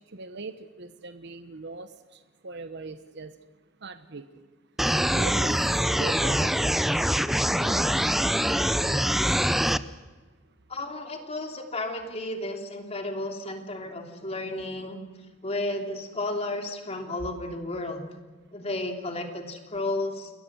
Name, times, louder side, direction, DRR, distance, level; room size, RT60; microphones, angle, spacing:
voice 1, 0.1-3.3 3.8-4.2 5.1-5.6 5.9-6.8 7.6-8.2 8.6-9.0, right 3 dB, 60° right, 10 dB, 1.1 m, -40 dB
sound 1, 4.8-9.8, equal, ahead, 0.6 m, -24 dB
voice 2, 10.7-15.0 15.4-18.1 18.5-20.3, left 2 dB, 35° left, 4 dB, 3.2 m, -33 dB
29.0 x 22.0 x 6.3 m, 1.4 s
head